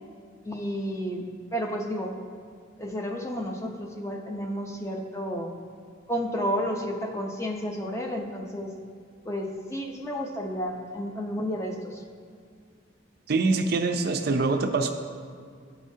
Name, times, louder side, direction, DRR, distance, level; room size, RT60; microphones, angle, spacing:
voice 1, 0.4-2.2 2.8-5.5 6.1-8.7 9.2-12.0, equal, 15° left, 2 dB, 0.6 m, -31 dB
voice 2, 13.3-14.9, right 3 dB, 55° right, 5 dB, 0.5 m, -24 dB
13.0 x 4.9 x 2.7 m, 2.1 s
head